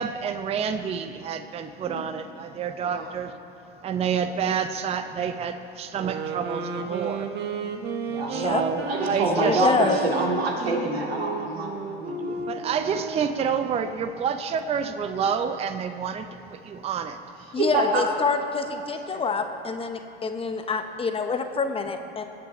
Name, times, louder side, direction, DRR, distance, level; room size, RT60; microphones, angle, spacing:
voice 1, 0.0-3.3 3.8-7.3 8.3-9.7 12.4-17.2, right 7 dB, 20° right, 9 dB, 0.6 m, -28 dB
sound 1, 5.9-13.5, right 5 dB, 35° right, 1.1 m, -33 dB
voice 2, 8.3-8.6 9.1-10.0 17.5-22.2, left 5 dB, 20° left, 7 dB, 0.8 m, -26 dB
voice 3, 8.8-12.3 17.6-18.0 19.1-19.2, right 2 dB, 90° right, 0 dB, 2.3 m, -26 dB
21.0 x 8.2 x 4.2 m, 2.7 s
hypercardioid pair, 100°, 30 cm